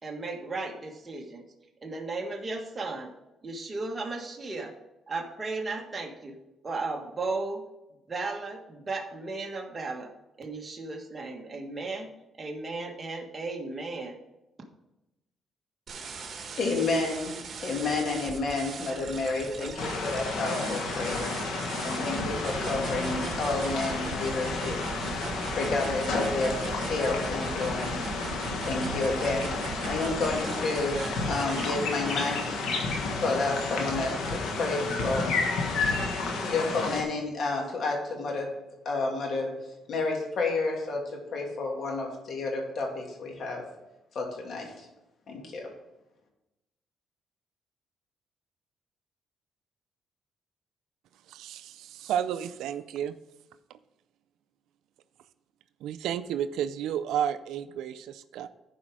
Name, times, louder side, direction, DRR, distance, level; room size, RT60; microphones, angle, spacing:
voice 1, 0.0-1.4 1.8-3.1 3.4-4.7 5.1-6.4 6.6-7.6 8.1-10.1 10.4-12.1 12.4-14.2, right 3 dB, 25° right, 1 dB, 1.5 m, -35 dB
sound 1, 15.9-32.5, right 5 dB, 55° right, 1.6 m, -39 dB
voice 2, 16.6-17.3 17.6-21.3 21.8-24.8 25.0-25.3 25.6-28.1 28.6-29.6 29.8-32.6 33.2-35.4 36.4-38.5 38.8-39.5 39.9-41.0 41.3-43.6 44.1-44.9 45.3-45.7, left 3 dB, 60° left, 0 dB, 2.7 m, -30 dB
sound 2, 19.8-37.0, left 3 dB, 85° left, 1.5 m, -31 dB
voice 3, 51.3-53.2 55.8-58.5, right 9 dB, 85° right, 12 dB, 0.4 m, -32 dB
11.5 x 5.0 x 4.7 m, 0.95 s
cardioid pair, 90°, 0 cm